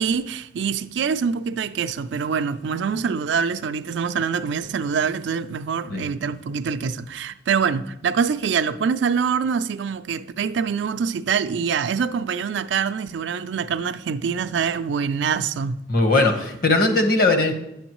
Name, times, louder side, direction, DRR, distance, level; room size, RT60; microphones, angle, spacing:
voice 1, 0.0-15.8, right 6 dB, 75° right, 0.4 m, -25 dB
voice 2, 15.9-17.5, left 2 dB, 55° left, 1.1 m, -19 dB
9.6 x 7.1 x 3.0 m
head